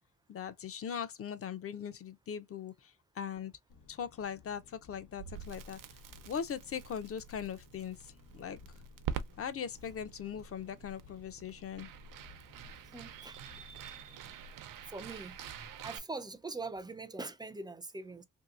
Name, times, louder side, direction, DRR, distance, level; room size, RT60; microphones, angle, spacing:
voice 1, 0.3-3.5 3.9-5.8 6.3-8.6 9.4-11.9, left 8 dB, 45° left, 0.5 m, -40 dB
Engine, 3.7-14.3, left 6 dB, 70° left, 1.1 m, -60 dB
Crackle, 5.2-16.0, right 8 dB, 90° right, 0.6 m, -46 dB
voice 2, 12.8-13.4 14.9-18.2, right 3 dB, 15° right, 0.3 m, -43 dB
3.0 x 2.8 x 2.4 m
wide cardioid pair, 145°, 32 cm